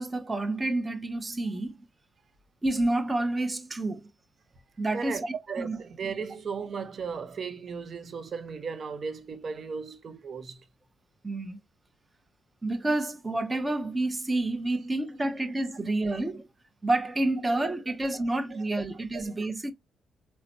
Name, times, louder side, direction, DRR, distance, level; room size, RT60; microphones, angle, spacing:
voice 1, 0.0-1.8 2.6-4.1 4.8-5.8 11.2-11.6 12.6-16.5 16.8-19.7, right 2 dB, 20° right, 0.8 m, -29 dB
voice 2, 4.9-10.6 18.1-18.2 18.5-18.6 19.1-19.4, right 5 dB, 50° right, 0.8 m, -36 dB
3.9 x 2.1 x 2.9 m
cardioid pair, 90°, 0 cm